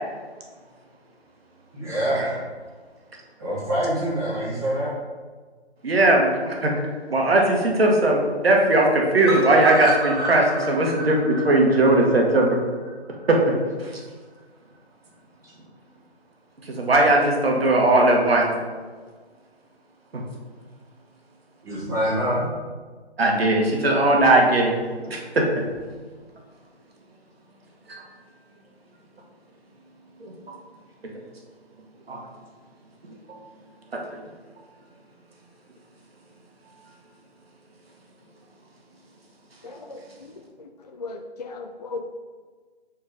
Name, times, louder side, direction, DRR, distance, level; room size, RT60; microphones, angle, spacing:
voice 1, 1.7-2.3 3.4-5.0 21.6-22.5, equal, 20° right, -11 dB, 1.5 m, -25 dB
voice 2, 5.8-12.6 13.3-13.4 13.8-14.0 16.6-18.5 20.1-20.2 23.2-24.8 25.1-25.7 27.9-28.0 30.2-30.3 31.1-31.2 32.1-32.3 33.0-33.4 33.9-34.2, right 2 dB, 60° right, 0 dB, 1.6 m, -19 dB
sound 1, 9.2-13.3 13.6-13.7 14.0-14.1 14.4-14.5, right 1 dB, 25° left, 1.3 m, -30 dB
voice 3, 39.6-42.1, left 3 dB, 40° left, 3 dB, 0.4 m, -37 dB
4.9 x 4.6 x 5.1 m, 1.5 s
figure-of-eight pair, 155°, 34 cm